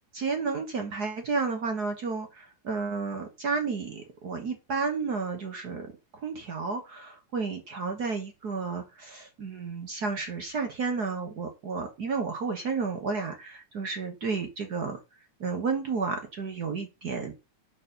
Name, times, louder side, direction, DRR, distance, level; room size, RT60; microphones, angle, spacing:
voice 1, 0.1-5.9 6.2-15.0 15.4-17.4, right 4 dB, 60° right, 5 dB, 1.0 m, -32 dB
8.3 x 4.2 x 6.6 m, 0.27 s
omnidirectional pair, 3.4 m